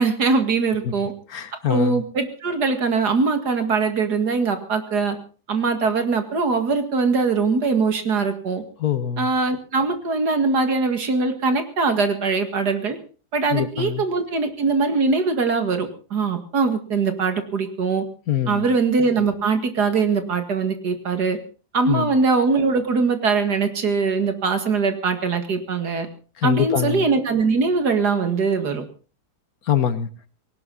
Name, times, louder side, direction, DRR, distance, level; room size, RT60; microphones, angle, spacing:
voice 1, 0.0-1.1 1.7-5.2 5.5-8.6 9.2-13.0 13.3-18.0 18.5-21.4 21.7-26.1 26.4-28.8, right 4 dB, 75° right, 2.6 m, -22 dB
voice 2, 1.3-2.0 8.8-9.3 13.5-14.0 18.3-18.7 21.9-22.1 26.4-27.1 29.7-30.1, left 9 dB, 65° left, 1.6 m, -23 dB
19.0 x 18.0 x 4.0 m
omnidirectional pair, 1.7 m